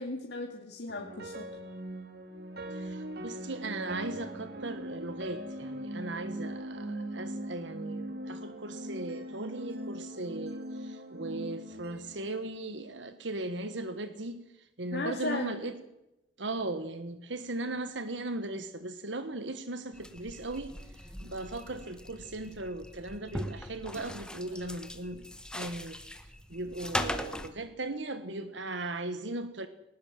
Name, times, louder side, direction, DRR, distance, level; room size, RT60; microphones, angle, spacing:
voice 1, 0.0-1.5 14.9-15.6, left 2 dB, 65° left, 1 dB, 2.4 m, -36 dB
sound 1, 0.9-13.2, right 1 dB, 60° right, 2.6 m, -40 dB
voice 2, 2.7-14.4 14.8-15.7 16.4-20.7 21.2-25.2 25.5-26.0 26.5-29.7, right 2 dB, 80° right, 10 dB, 1.5 m, -38 dB
sound 2, 19.9-27.5, left 1 dB, 5° left, 1.4 m, -40 dB
19.5 x 19.0 x 7.7 m, 0.91 s
head